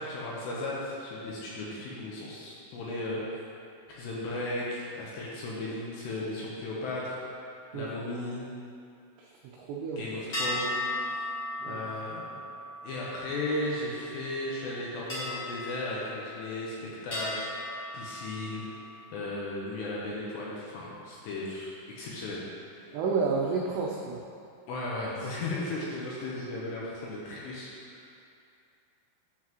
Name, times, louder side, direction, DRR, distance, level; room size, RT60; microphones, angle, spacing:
voice 1, 0.0-3.4 3.9-7.2 7.7-8.5 10.0-10.7 11.1-11.3 11.7-12.4 12.8-16.7 17.0-18.6 19.1-22.4 22.8-22.9 24.7-28.0, left 2 dB, 75° left, -5 dB, 2.6 m, -35 dB
voice 2, 9.2-10.0 11.6-11.8 22.9-24.2, right 4 dB, 90° right, -2 dB, 2.4 m, -30 dB
sound 1, 10.3-14.0 15.1-16.6 17.1-18.8, left 1 dB, 60° left, 1.1 m, -36 dB
9.5 x 7.2 x 3.0 m, 2.4 s
omnidirectional pair, 5.6 m